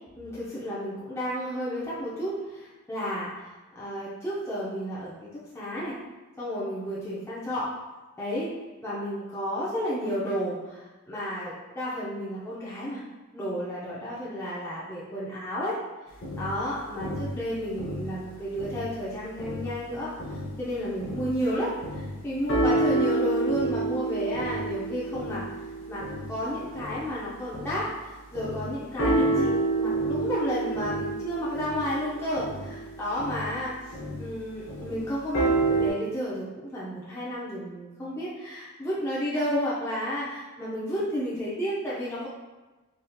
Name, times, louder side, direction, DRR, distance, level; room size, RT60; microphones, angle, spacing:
voice 1, 0.2-5.3 5.5-5.9 6.4-7.7 8.2-8.5 8.8-13.0 13.3-15.8 16.4-20.1 20.6-25.4 25.9-33.7 34.2-42.3, equal, 10° left, -9 dB, 0.5 m, -32 dB
sound 1, 16.2-19.1 19.4-28.0 28.3-35.9, right 2 dB, 60° left, 0.7 m, -29 dB
3.5 x 2.7 x 2.3 m, 1.2 s
head